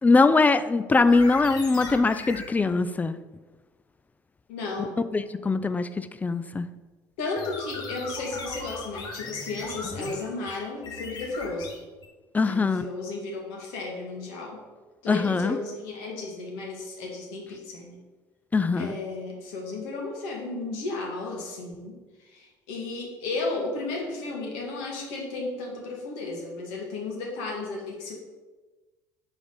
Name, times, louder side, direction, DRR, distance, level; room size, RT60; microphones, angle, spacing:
voice 1, 0.0-3.2 4.8-6.7 12.3-12.9 15.1-15.6 18.5-19.0, left 3 dB, 15° left, 13 dB, 0.4 m, -22 dB
sound 1, 1.0-2.5 7.4-12.1, left 3 dB, 45° left, 1.1 m, -38 dB
voice 2, 4.5-5.0 7.2-11.8 12.4-14.6 15.0-18.0 18.8-22.0 22.3-28.2, left 3 dB, 65° left, -1 dB, 1.5 m, -34 dB
5.0 x 4.7 x 5.3 m, 1.2 s
figure-of-eight pair, 60°, 10 cm